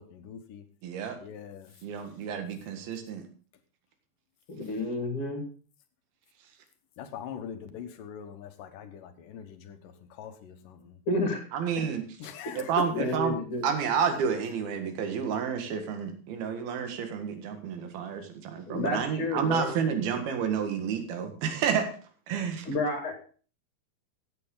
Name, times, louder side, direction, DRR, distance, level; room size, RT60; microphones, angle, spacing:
voice 1, 0.0-0.6 1.2-1.7 7.0-11.0 12.2-13.1, left 7 dB, 70° left, 8 dB, 2.5 m, -41 dB
voice 2, 0.8-1.2 1.8-3.2 11.5-12.0 12.5-13.4 13.6-21.9 22.3-22.7, right 7 dB, 75° right, 6 dB, 3.5 m, -30 dB
voice 3, 4.5-5.5 11.1-11.4 11.7-11.8 12.9-13.6 18.7-19.8 22.7-23.2, left 2 dB, 40° left, 4 dB, 2.4 m, -30 dB
15.5 x 8.4 x 3.8 m, 0.40 s
omnidirectional pair, 4.5 m